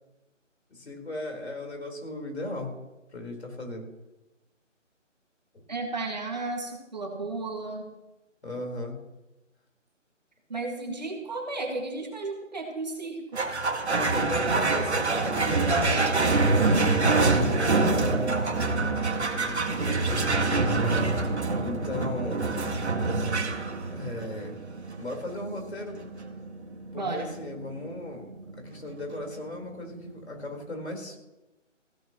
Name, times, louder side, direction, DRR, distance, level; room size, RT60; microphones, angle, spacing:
voice 1, 0.7-2.7 3.1-3.9 8.4-9.0 13.9-21.0 21.6-22.5 23.9-24.6 25.0-26.0 26.9-28.3 28.6-31.2, left 2 dB, 55° left, 2 dB, 4.2 m, -37 dB
voice 2, 5.7-7.9 10.5-13.4 14.4-14.6 26.9-27.3, right 3 dB, 35° right, 1 dB, 1.9 m, -33 dB
sound 1, 13.3-30.1, right 3 dB, 60° right, 1.9 m, -26 dB
20.0 x 16.0 x 3.0 m, 1.0 s
figure-of-eight pair, 175°, 38 cm